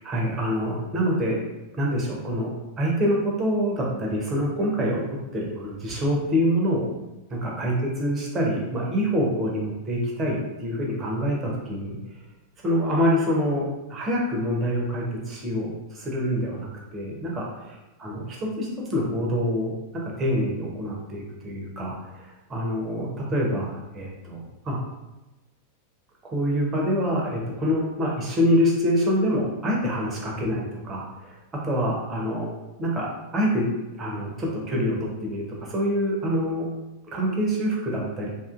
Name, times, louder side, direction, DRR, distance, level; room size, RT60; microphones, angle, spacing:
voice 1, 0.0-1.4 1.7-6.9 7.3-12.0 12.6-19.7 20.0-24.8 26.2-31.3 31.6-32.5 32.8-33.1 33.3-33.7 34.0-36.7 37.1-38.3, equal, 25° right, -2 dB, 0.7 m, -26 dB
2.7 x 2.4 x 2.4 m, 1.0 s
figure-of-eight pair, 90°, 0 cm